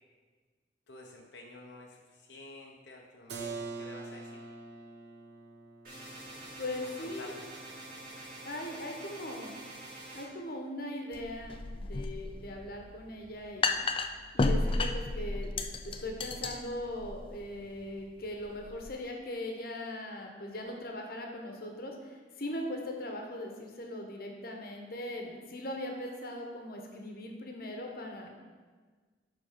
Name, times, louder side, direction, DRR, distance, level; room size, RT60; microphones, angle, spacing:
voice 1, 0.9-4.4 6.6-7.4, left 2 dB, 85° left, 0 dB, 0.8 m, -50 dB
Keyboard (musical), 3.3-8.9, right 4 dB, 70° right, 0.7 m, -46 dB
sound 1, 5.8-10.2, right 1 dB, 55° right, 2.6 m, -46 dB
voice 2, 6.6-7.3 8.4-9.6 10.1-13.7 14.3-28.3, left 1 dB, 55° left, 2 dB, 1.1 m, -40 dB
sound 2, 11.1-18.9, left 3 dB, 30° left, 0.4 m, -33 dB
10.0 x 3.7 x 5.1 m, 1.4 s
head